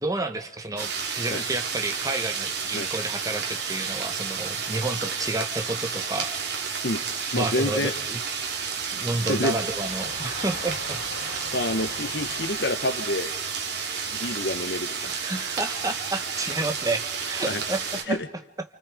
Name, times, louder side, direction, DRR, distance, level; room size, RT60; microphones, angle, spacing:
voice 1, 0.0-6.3 7.3-8.2 8.9-11.4 15.0-18.2, right 2 dB, 20° right, 6 dB, 1.4 m, -30 dB
sound 1, 0.8-18.0, right 6 dB, 60° right, 3.5 m, -31 dB
Train, 3.6-4.9 5.3-6.3 6.8-15.6 15.8-15.9, left 3 dB, 80° left, 3.8 m, -45 dB
voice 2, 7.3-7.9 9.3-9.6 11.5-13.3 14.1-15.1 17.4-17.6 18.1-18.3, left 1 dB, 65° left, 10 dB, 1.3 m, -28 dB
30.0 x 29.5 x 5.1 m, 0.85 s
head